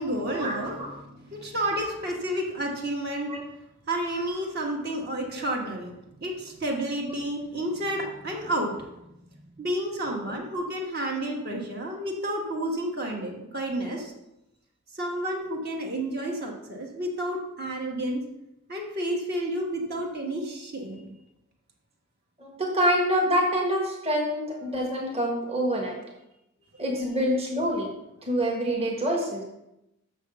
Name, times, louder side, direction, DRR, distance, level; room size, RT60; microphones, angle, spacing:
voice 1, 0.0-3.3 3.9-5.9 6.2-8.9 9.6-14.1 14.9-18.2 18.7-21.1 26.7-26.8, right 1 dB, 45° right, 0 dB, 1.4 m, -31 dB
voice 2, 10.0-10.4 22.4-26.0 26.8-27.9 28.2-29.4, equal, 30° right, 0 dB, 1.4 m, -26 dB
6.5 x 6.3 x 6.9 m, 0.88 s
head